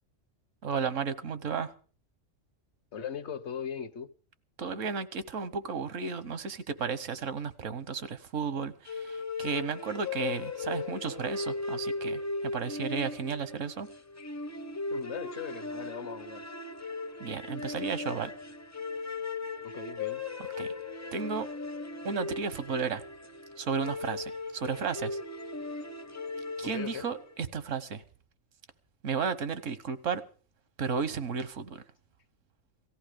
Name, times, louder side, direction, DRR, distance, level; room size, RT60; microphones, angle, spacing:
voice 1, 0.6-1.7 4.6-13.9 17.2-18.3 20.6-20.7 21.1-21.5 22.0-23.0 23.6-25.2 26.6-28.0 29.0-30.2 30.8-31.8, right 5 dB, 80° right, 1.4 m, -33 dB
voice 2, 2.9-4.1 14.9-16.4 19.6-20.2 26.6-27.0, left 7 dB, 60° left, 1.2 m, -39 dB
sound 1, 8.9-27.4, left 3 dB, 20° left, 0.5 m, -37 dB
18.0 x 14.5 x 5.1 m
omnidirectional pair, 1.3 m